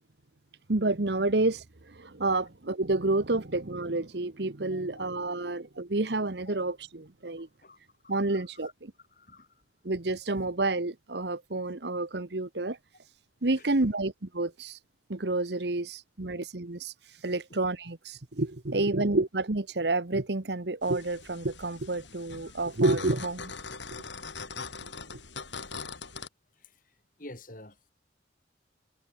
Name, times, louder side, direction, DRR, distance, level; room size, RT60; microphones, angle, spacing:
voice 1, 0.7-7.5 8.1-8.9 9.8-12.8 13.4-14.8 15.1-16.9 17.2-23.5, right 2 dB, 65° right, 1.2 m, -29 dB
voice 2, 4.7-5.4 6.5-6.6 7.4-7.8 8.0-8.7 9.0-9.5 13.5-13.7 16.3-16.4 26.6-26.7 27.2-27.8, left 1 dB, 45° left, 5.5 m, -50 dB
sound 1, 20.8-26.3, left 5 dB, 80° left, 7.6 m, -42 dB
head